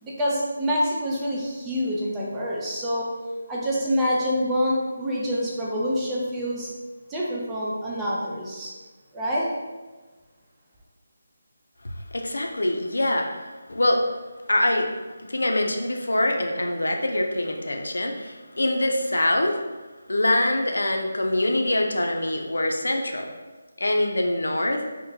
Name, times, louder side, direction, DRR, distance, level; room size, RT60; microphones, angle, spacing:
voice 1, 0.0-3.1 3.5-6.7 7.1-8.7 9.1-9.5, equal, 10° right, -6 dB, 0.5 m, -26 dB
voice 2, 12.1-14.0 14.5-14.9 15.2-19.6 20.1-23.3 23.8-24.8, left 1 dB, 90° left, 3 dB, 0.4 m, -24 dB
2.7 x 2.1 x 3.8 m, 1.3 s
figure-of-eight pair, 165°, 0 cm